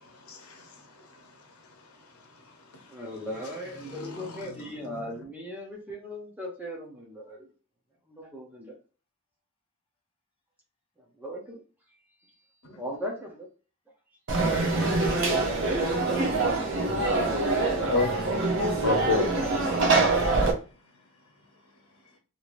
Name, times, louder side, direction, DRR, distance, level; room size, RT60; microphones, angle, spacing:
voice 1, 0.0-3.0 3.8-5.0 12.6-12.8 17.4-20.0, left 3 dB, 85° left, 0.8 m, -34 dB
voice 2, 2.9-7.5 8.1-8.8 11.2-11.6 12.7-13.5, equal, 10° right, 0.6 m, -38 dB
Conversation / Crowd, 14.3-20.5, right 3 dB, 60° right, 0.8 m, -24 dB
voice 3, 19.7-22.2, left 3 dB, 25° left, 1.2 m, -66 dB
3.2 x 2.9 x 2.5 m
head